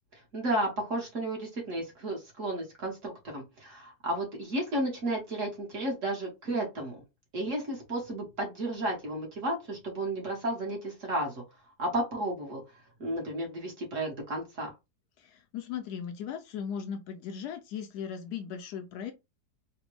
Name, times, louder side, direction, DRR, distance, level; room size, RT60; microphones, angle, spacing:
voice 1, 0.3-7.0 7.3-11.4 11.8-12.6 13.0-14.7, right 1 dB, 50° right, 1.3 m, -33 dB
voice 2, 15.2-19.1, left 8 dB, 75° left, 1.0 m, -38 dB
3.4 x 2.2 x 3.0 m
omnidirectional pair, 1.9 m